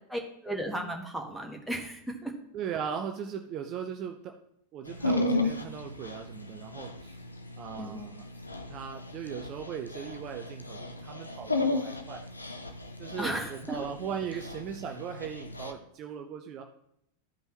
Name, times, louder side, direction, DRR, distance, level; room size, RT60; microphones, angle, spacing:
voice 1, 0.1-2.3 7.8-8.0 13.2-13.8, right 1 dB, ahead, 1 dB, 1.5 m, -35 dB
voice 2, 2.5-4.4 4.7-7.2 7.6-8.2 8.7-12.3 13.0-16.6, right 8 dB, 35° right, 5 dB, 0.6 m, -38 dB
Dog, 4.9-15.7, left 2 dB, 80° left, 0.8 m, -34 dB
13.0 x 5.4 x 2.9 m, 0.75 s
figure-of-eight pair, 90°, 0 cm